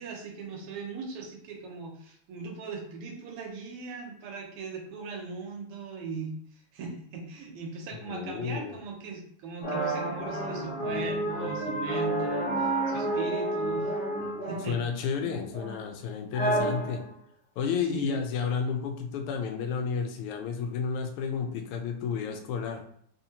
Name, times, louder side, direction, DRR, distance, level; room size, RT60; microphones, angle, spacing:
voice 1, 0.0-13.9 14.4-14.8 17.9-18.3, right 4 dB, 90° right, 1 dB, 1.8 m, -39 dB
voice 2, 7.9-8.8 14.7-17.1 17.6-22.8, left 6 dB, 85° left, 4 dB, 1.5 m, -31 dB
sound 1, 9.6-14.8 15.2-15.9 16.3-17.1, right 1 dB, 55° left, 1.5 m, -30 dB
4.0 x 2.8 x 2.8 m, 0.64 s
omnidirectional pair, 2.4 m